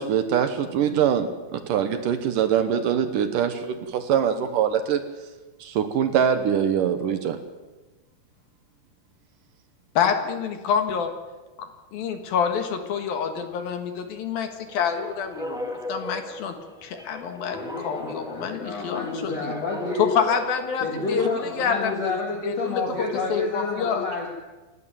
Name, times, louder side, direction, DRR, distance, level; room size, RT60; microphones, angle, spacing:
voice 1, 0.0-5.0 5.6-7.4, right 8 dB, 65° right, 9 dB, 2.3 m, -23 dB
voice 2, 10.0-11.1 11.6-16.5 16.8-19.5 20.0-22.2 22.4-22.8 23.3-24.1, left 7 dB, 65° left, 6 dB, 3.2 m, -27 dB
sound 1, 14.7-21.5, left 1 dB, ahead, 1.0 m, -37 dB
voice 3, 17.5-20.0 20.8-24.3, left 3 dB, 45° left, 0 dB, 3.1 m, -29 dB
27.5 x 12.5 x 9.1 m, 1.2 s
omnidirectional pair, 4.7 m